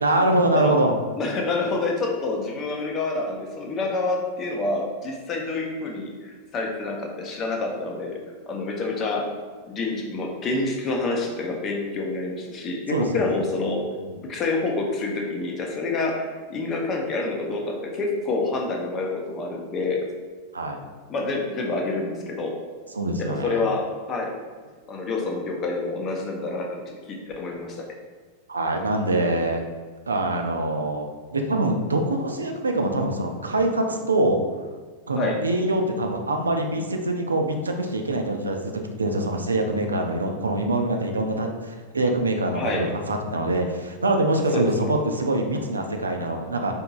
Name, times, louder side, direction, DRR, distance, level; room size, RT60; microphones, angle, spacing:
voice 1, 0.0-1.0 12.9-13.4 20.5-20.8 22.9-23.7 28.5-29.6 30.1-34.4 35.1-38.7 39.0-46.8, right 2 dB, 75° right, 3 dB, 0.4 m, -24 dB
voice 2, 1.1-8.2 8.5-9.3 9.7-13.8 14.3-20.0 21.1-22.6 23.2-24.3 24.9-27.8 35.2-35.4 42.5-42.9 44.5-44.9, left 3 dB, 30° left, 0 dB, 0.7 m, -27 dB
4.5 x 2.8 x 2.3 m, 1.5 s
figure-of-eight pair, 90°, 0 cm